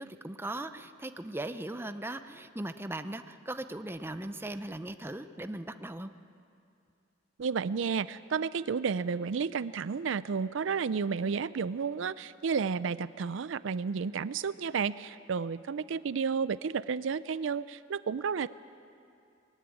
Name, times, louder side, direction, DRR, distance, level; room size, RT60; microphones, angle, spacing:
voice 1, 0.0-6.1, right 1 dB, 10° right, 9 dB, 0.6 m, -38 dB
voice 2, 7.4-18.5, right 6 dB, 70° right, 16 dB, 0.4 m, -32 dB
21.5 x 15.5 x 9.8 m, 2.5 s
head